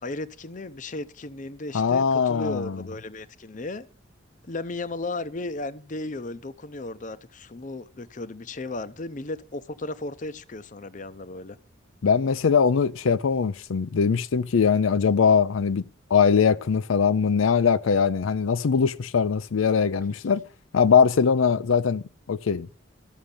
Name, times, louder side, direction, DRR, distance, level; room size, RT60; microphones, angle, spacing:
voice 1, 0.0-3.9 4.5-11.6, left 2 dB, 40° left, 0.7 m, -35 dB
voice 2, 1.7-2.8 12.0-15.8 16.1-20.4 20.7-22.0 22.3-22.7, left 6 dB, 85° left, 0.5 m, -21 dB
13.0 x 6.4 x 7.0 m
head